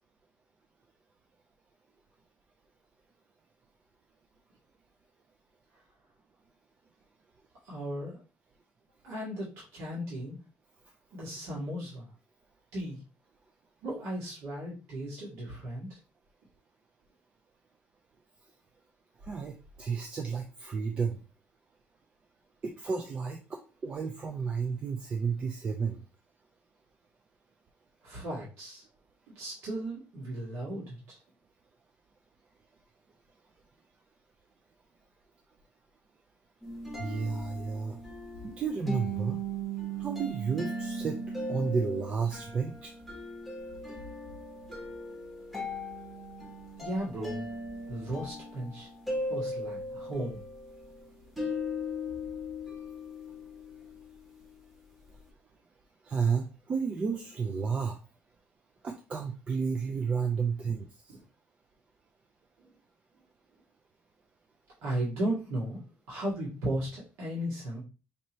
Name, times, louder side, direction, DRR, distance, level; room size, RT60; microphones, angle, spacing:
voice 1, 7.7-8.2 9.0-10.4 11.1-12.1 12.7-13.0 13.8-16.0 28.0-28.8 29.4-31.2 46.8-47.5 47.9-48.9 49.3-50.4 64.8-65.8 66.1-67.8, right 1 dB, 85° right, -6 dB, 1.8 m, -35 dB
voice 2, 19.2-21.2 22.6-26.0 37.0-38.0 38.4-39.4 40.0-41.2 41.5-42.9 56.0-58.0 58.8-60.9, right 5 dB, 25° right, 5 dB, 0.4 m, -32 dB
sound 1, 36.6-54.7, equal, 5° right, 1.0 m, -38 dB
5.2 x 2.7 x 3.0 m, 0.33 s
cardioid pair, 175°, 5 cm